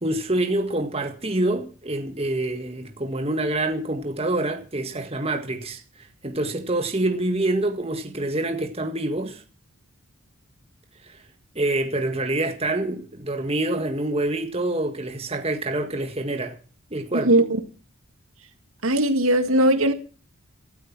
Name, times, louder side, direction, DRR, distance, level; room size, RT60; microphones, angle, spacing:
voice 1, 0.0-9.4 11.1-11.2 11.6-16.6 16.9-17.3, right 2 dB, 25° right, 1.8 m, -26 dB
voice 2, 18.8-19.9, right 1 dB, 75° right, 1.9 m, -18 dB
16.5 x 13.0 x 6.1 m
head